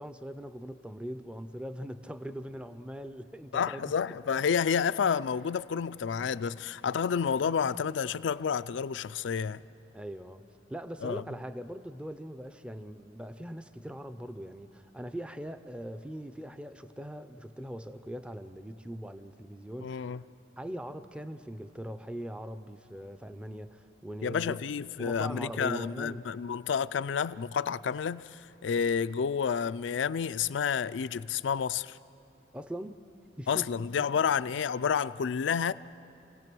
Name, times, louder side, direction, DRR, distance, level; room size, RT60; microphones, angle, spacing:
voice 1, 0.0-3.9 9.9-10.4 10.7-20.0 20.6-24.6 25.0-26.3 32.5-33.0 33.4-33.8, equal, 5° right, 0.5 m, -41 dB
voice 2, 3.5-9.6 11.0-11.2 19.8-20.2 24.2-32.0 33.5-35.7, left 7 dB, 70° left, 0.4 m, -30 dB
28.0 x 17.0 x 6.1 m
head